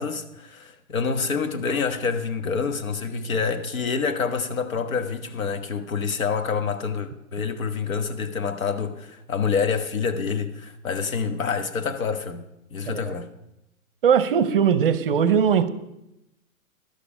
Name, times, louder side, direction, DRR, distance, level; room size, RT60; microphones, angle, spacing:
voice 1, 0.0-12.5 12.7-13.3, left 5 dB, 70° left, 1.3 m, -27 dB
voice 2, 14.0-15.7, right 7 dB, 40° right, 0.6 m, -20 dB
12.0 x 6.9 x 5.0 m
hypercardioid pair, 150°, 42 cm